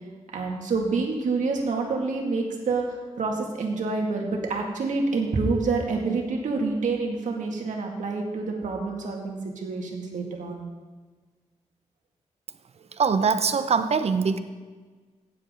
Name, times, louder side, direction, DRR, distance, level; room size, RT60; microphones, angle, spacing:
voice 1, 0.3-2.8 3.2-10.7, right 3 dB, 80° right, 0 dB, 2.4 m, -27 dB
voice 2, 12.9-14.4, right 5 dB, 55° right, 11 dB, 0.8 m, -23 dB
15.5 x 10.5 x 3.9 m, 1.4 s
cardioid pair, 90°, 13 cm